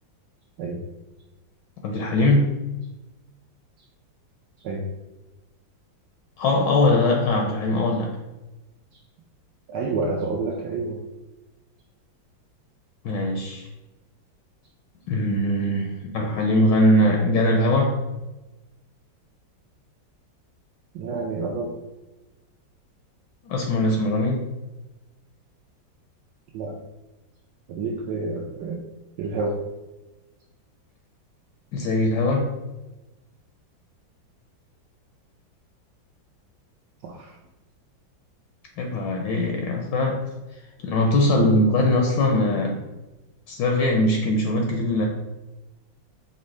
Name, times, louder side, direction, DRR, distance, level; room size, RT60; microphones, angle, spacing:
voice 1, 1.8-2.6 6.4-8.2 13.0-13.7 15.1-18.0 23.4-24.4 31.7-32.5 38.8-40.2 40.8-42.8 43.5-45.1, left 1 dB, 75° left, 1 dB, 1.1 m, -21 dB
voice 2, 9.7-11.0 20.9-21.7 26.5-26.8 27.7-28.8 29.2-29.6 37.0-37.3, right 3 dB, 75° right, -1 dB, 1.0 m, -29 dB
5.2 x 2.7 x 3.2 m, 1.1 s
omnidirectional pair, 2.1 m